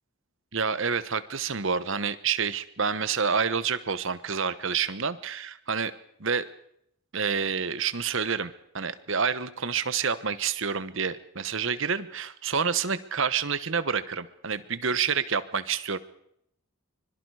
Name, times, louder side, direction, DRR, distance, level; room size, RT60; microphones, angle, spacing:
voice 1, 0.5-5.9 6.2-6.5 7.1-16.0, right 6 dB, 60° right, 14 dB, 1.1 m, -28 dB
25.0 x 22.0 x 4.9 m, 0.72 s
head